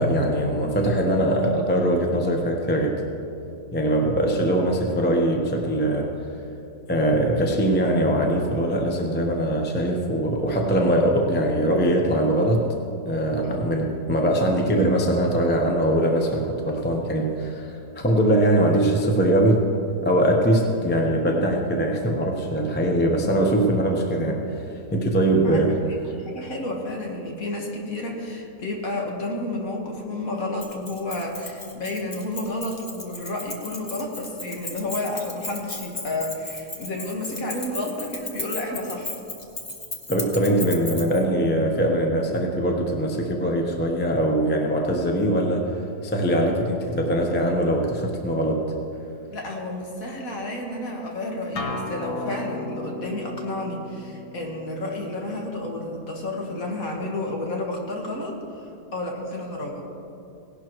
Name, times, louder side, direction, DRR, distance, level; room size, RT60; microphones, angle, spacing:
voice 1, 0.0-3.0 3.7-6.1 6.9-12.6 13.0-19.6 20.0-24.6 24.9-25.8 40.1-45.8 46.0-48.6, right 1 dB, 10° left, 1 dB, 0.7 m, -22 dB
voice 2, 25.4-39.2 49.3-59.9, left 1 dB, 55° left, 0 dB, 1.9 m, -31 dB
Keys jangling, 30.6-41.2, left 2 dB, 30° left, 1.1 m, -36 dB
Acoustic guitar, 51.6-56.7, left 2 dB, 70° left, 1.8 m, -36 dB
18.0 x 11.5 x 3.1 m, 2.7 s
omnidirectional pair, 1.8 m